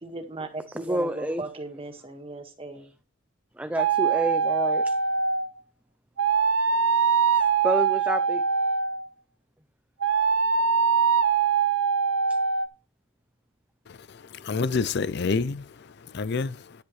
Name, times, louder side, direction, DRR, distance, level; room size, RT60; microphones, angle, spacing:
voice 1, 0.0-2.9, right 2 dB, 30° right, 1.7 m, -37 dB
voice 2, 0.7-1.4 3.6-4.9 7.3-8.4, right 1 dB, 10° right, 0.5 m, -29 dB
sound 1, 3.8-5.5 6.2-9.1 10.0-12.7, right 6 dB, 80° right, 0.7 m, -23 dB
voice 3, 13.9-15.7 16.1-16.7, left 4 dB, 55° left, 0.5 m, -28 dB
10.5 x 10.0 x 3.2 m
head